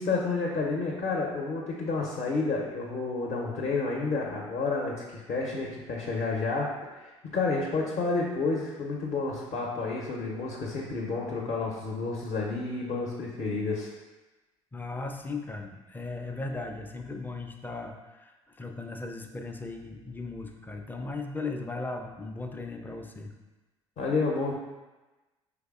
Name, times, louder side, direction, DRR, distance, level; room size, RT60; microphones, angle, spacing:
voice 1, 0.0-13.9 24.0-24.6, left 3 dB, 45° left, -2 dB, 0.7 m, -30 dB
voice 2, 14.7-23.3, left 3 dB, 10° left, 3 dB, 0.4 m, -37 dB
5.0 x 3.4 x 2.4 m, 1.1 s
figure-of-eight pair, 55°, 16 cm